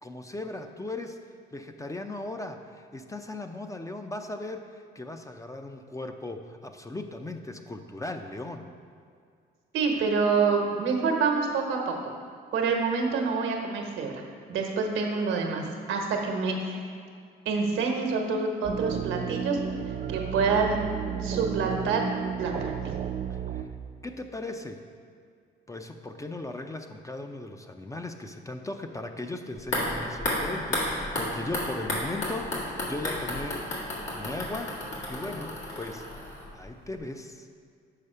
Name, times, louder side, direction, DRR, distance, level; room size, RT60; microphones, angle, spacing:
voice 1, 0.0-1.2 1.5-8.7 23.3-23.7 24.0-24.8 25.7-33.7 34.1-34.7 35.1-36.0 36.5-37.5, left 2 dB, 15° left, 6 dB, 0.5 m, -37 dB
voice 2, 9.7-11.9 12.5-14.2 14.5-16.8 17.4-19.6 20.1-20.8 21.2-22.1 22.4-22.8, right 4 dB, 85° right, 2 dB, 1.1 m, -27 dB
sound 1, 18.6-23.6, right 8 dB, 45° right, 0.5 m, -33 dB
sound 2, 29.6-36.7 37.0-37.1, left 1 dB, 75° left, 1.9 m, -32 dB
6.6 x 4.7 x 5.5 m, 2.3 s
cardioid pair, 90°, 20 cm